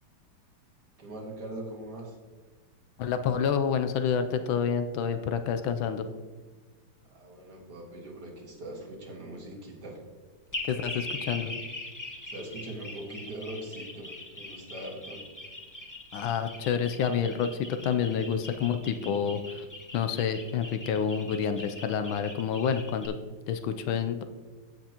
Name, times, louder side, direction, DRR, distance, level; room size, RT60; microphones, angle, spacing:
voice 1, 1.0-2.2 7.0-10.0 12.2-15.2, right 1 dB, 55° right, -1 dB, 2.2 m, -41 dB
voice 2, 3.0-6.1 10.6-11.5 16.1-19.7 19.9-23.1 23.5-24.2, left 7 dB, 75° left, 9 dB, 1.3 m, -28 dB
scifi noise, 10.5-23.1, left 1 dB, 15° left, 0.6 m, -41 dB
14.5 x 5.9 x 2.9 m, 1.4 s
omnidirectional pair, 2.3 m